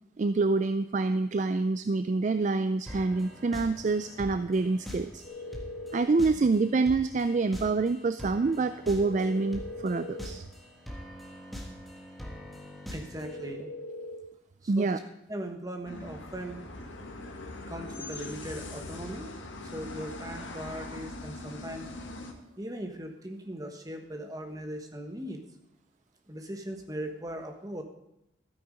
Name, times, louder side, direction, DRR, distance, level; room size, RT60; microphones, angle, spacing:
voice 1, 0.2-5.2 5.9-10.5 14.7-15.0, right 3 dB, 35° right, 11 dB, 0.3 m, -27 dB
sound 1, 2.9-13.5, equal, ahead, 1.6 m, -44 dB
sound 2, 5.2-6.1 8.9-10.3 13.2-14.2, left 1 dB, 35° left, 2.2 m, -40 dB
voice 2, 12.9-13.7 14.6-15.0 15.3-16.6 17.7-19.3 19.6-21.9 22.6-25.4 26.3-27.8, right 1 dB, 20° right, 4 dB, 1.2 m, -39 dB
sound 3, 15.8-22.3, left 2 dB, 70° left, 1.6 m, -41 dB
12.5 x 9.4 x 5.0 m, 0.84 s
head